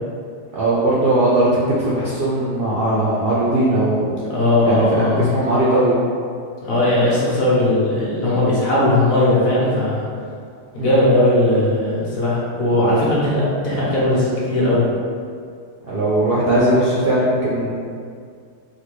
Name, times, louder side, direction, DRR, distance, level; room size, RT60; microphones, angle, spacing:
voice 1, 0.5-1.5 1.8-4.1 4.6-6.0 10.8-11.0 15.9-17.7, right 1 dB, 85° right, -8 dB, 0.5 m, -19 dB
voice 2, 4.3-5.3 6.6-10.1 10.7-14.8, left 1 dB, 60° left, -7 dB, 1.2 m, -18 dB
4.1 x 2.2 x 3.1 m, 2.2 s
omnidirectional pair, 1.8 m